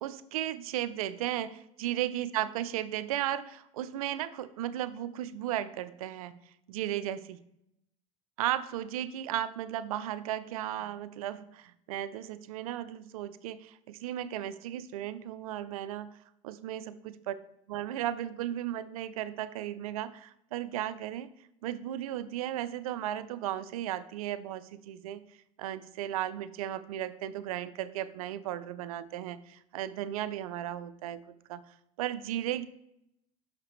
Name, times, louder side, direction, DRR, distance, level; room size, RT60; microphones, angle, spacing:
voice 1, 0.0-6.4 6.7-7.4 8.4-16.1 16.4-17.3 17.7-21.3 21.6-25.2 25.6-31.2 31.5-31.6 32.0-32.7, right 12 dB, 80° right, 15 dB, 0.4 m, -35 dB
5.9 x 5.8 x 3.1 m, 0.79 s
hypercardioid pair, 100°, 18 cm